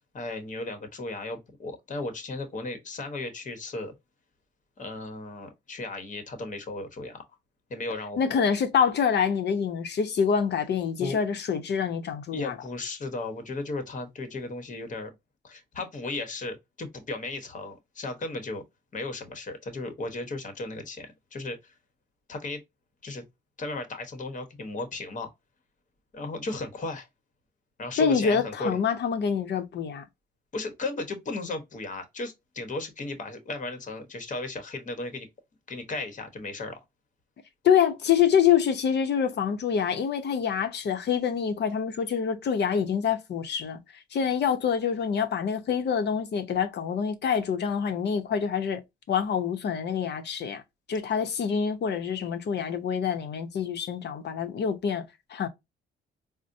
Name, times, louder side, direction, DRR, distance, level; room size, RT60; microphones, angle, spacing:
voice 1, 0.1-3.9 4.8-7.2 7.7-8.2 11.0-11.2 12.3-15.1 15.4-18.6 18.9-21.7 22.3-22.6 23.0-23.2 23.6-25.3 26.1-27.1 27.8-28.8 30.5-35.3 35.7-36.8, left 2 dB, 40° left, 1.0 m, -35 dB
voice 2, 8.2-12.6 28.0-30.0 37.6-43.8 44.1-48.8 49.1-50.6 50.9-55.5, left 7 dB, 60° left, 0.8 m, -26 dB
4.1 x 2.1 x 2.6 m
cardioid pair, 90°, 20 cm